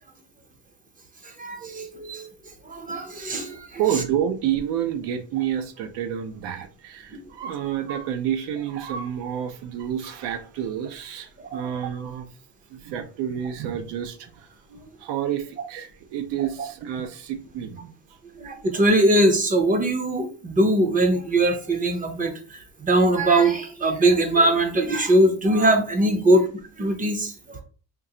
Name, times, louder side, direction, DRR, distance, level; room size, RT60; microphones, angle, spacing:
voice 1, 1.4-2.3 2.7-3.7 11.4-11.6 18.4-22.3 22.8-27.6, right 1 dB, 20° right, 0.5 m, -21 dB
voice 2, 3.7-12.3 12.7-14.5 15.0-17.9, right 9 dB, 85° right, 0.7 m, -29 dB
3.7 x 2.4 x 2.8 m
cardioid pair, 150°, 40 cm